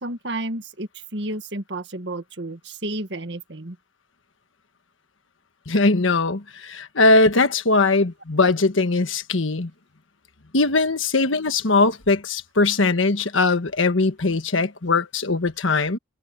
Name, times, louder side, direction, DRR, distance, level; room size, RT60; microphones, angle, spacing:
voice 1, 0.0-3.8 11.2-11.3, right 1 dB, 65° right, 1.9 m, -31 dB
voice 2, 5.7-9.7 10.5-16.0, left 3 dB, 90° left, 1.5 m, -20 dB
head